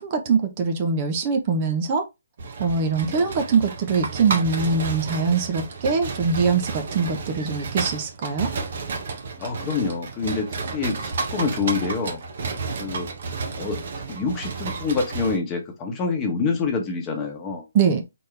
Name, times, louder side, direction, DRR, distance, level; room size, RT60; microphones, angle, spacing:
voice 1, 0.0-2.0 2.6-8.5 17.7-18.0, right 5 dB, 30° right, 0.9 m, -23 dB
sound 1, 2.4-15.4, right 4 dB, 55° right, 1.4 m, -32 dB
voice 2, 3.0-3.3 9.4-12.2 12.8-13.1 13.6-13.8 14.1-17.7, left 4 dB, 20° left, 1.2 m, -26 dB
4.3 x 3.7 x 3.3 m
hypercardioid pair, 155°, 0 cm